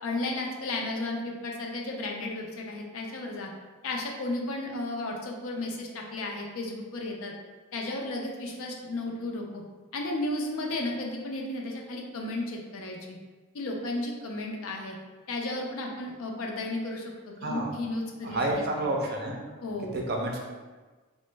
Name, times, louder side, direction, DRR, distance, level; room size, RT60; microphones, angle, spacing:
voice 1, 0.0-3.5 3.8-7.3 7.7-9.6 9.9-13.2 13.5-15.0 15.3-18.8 19.6-20.0, left 2 dB, 70° left, 0 dB, 0.5 m, -34 dB
voice 2, 17.4-17.8 18.2-19.4 19.9-20.4, right 1 dB, 45° right, 0 dB, 0.4 m, -29 dB
3.0 x 2.0 x 3.2 m, 1.3 s
head